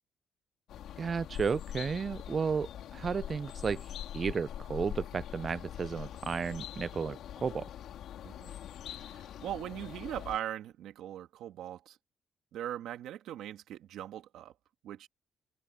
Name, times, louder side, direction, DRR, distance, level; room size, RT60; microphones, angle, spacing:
sound 1, 0.7-10.4, left 11 dB, 75° left, 2.8 m, -43 dB
voice 1, 1.0-7.7, right 5 dB, 40° right, 0.3 m, -33 dB
voice 2, 8.2-8.5 9.0-12.0 12.5-14.5 14.8-15.1, right 11 dB, 80° right, 2.1 m, -40 dB
cardioid pair, 90°, 0 cm